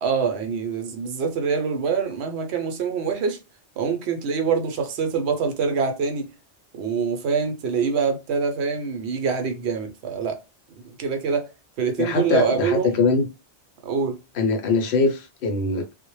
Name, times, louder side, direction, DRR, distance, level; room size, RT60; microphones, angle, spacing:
voice 1, 0.0-3.4 3.8-6.3 6.8-10.4 10.8-11.5 11.8-13.0 13.8-14.2, right 6 dB, 70° right, 0.8 m, -25 dB
voice 2, 12.0-13.3 14.3-15.9, left 4 dB, 70° left, 0.9 m, -22 dB
2.1 x 2.1 x 3.0 m
omnidirectional pair, 1.2 m